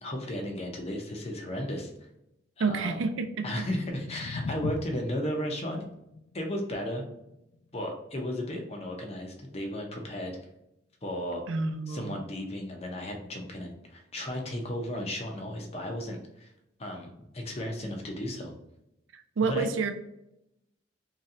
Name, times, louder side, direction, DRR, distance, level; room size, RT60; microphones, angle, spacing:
voice 1, 0.0-1.9 2.6-3.0 3.4-5.8 6.3-7.0 7.7-10.4 11.0-11.4 11.9-16.5 16.8-18.5 19.5-19.7, left 1 dB, 35° left, 2 dB, 0.7 m, -34 dB
voice 2, 2.6-3.4 11.5-12.2 19.1-19.9, right 4 dB, 85° right, 8 dB, 0.4 m, -29 dB
sound 1, 3.5-9.6, left 3 dB, 60° left, 0.3 m, -41 dB
3.1 x 2.8 x 3.7 m, 0.85 s
head